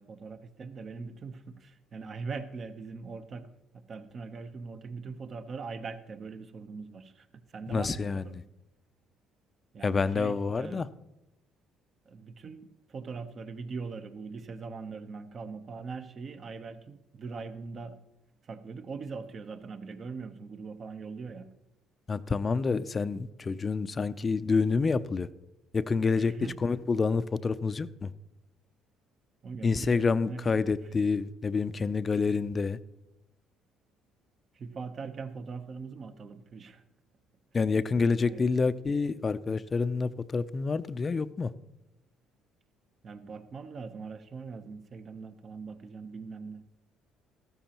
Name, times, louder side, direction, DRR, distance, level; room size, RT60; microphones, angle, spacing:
voice 1, 0.0-8.4 9.7-10.9 12.1-18.0 18.5-21.5 26.1-26.6 29.4-30.6 34.5-36.8 38.2-38.5 43.0-46.6, right 4 dB, 45° right, 0.9 m, -41 dB
voice 2, 7.7-8.4 9.8-10.9 22.1-25.3 25.7-28.1 29.6-32.8 37.5-41.5, left 4 dB, 35° left, 0.5 m, -28 dB
14.0 x 12.5 x 3.0 m
supercardioid pair, 75°, 0 cm